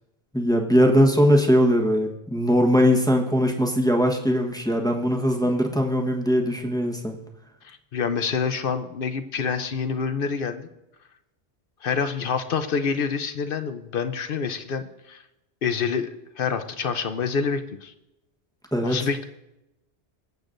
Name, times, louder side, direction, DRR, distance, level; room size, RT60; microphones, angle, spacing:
voice 1, 0.3-7.2 18.7-19.1, equal, 5° left, 1 dB, 1.1 m, -20 dB
voice 2, 7.6-10.7 11.8-15.2 15.6-17.9 18.8-19.2, left 6 dB, 55° left, 9 dB, 0.9 m, -27 dB
24.5 x 8.3 x 2.6 m, 0.93 s
omnidirectional pair, 1.2 m